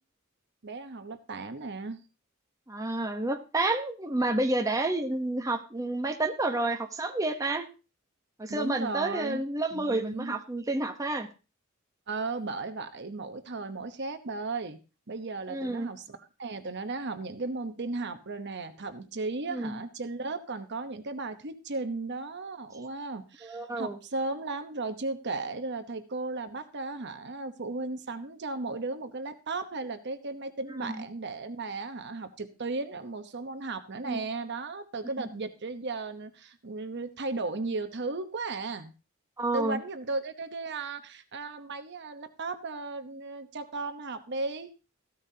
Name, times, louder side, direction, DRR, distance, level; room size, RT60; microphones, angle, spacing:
voice 1, 0.6-2.0 8.5-9.4 9.7-10.4 12.1-14.8 15.1-38.9 39.5-44.7, right 3 dB, 55° right, 9 dB, 1.0 m, -35 dB
voice 2, 2.7-7.7 8.4-11.3 15.5-15.9 19.5-19.7 23.4-24.0 30.8-31.0 34.0-34.2 35.2-35.3 39.4-39.8, right 2 dB, 15° right, 5 dB, 0.9 m, -30 dB
15.0 x 13.0 x 2.8 m, 0.32 s
head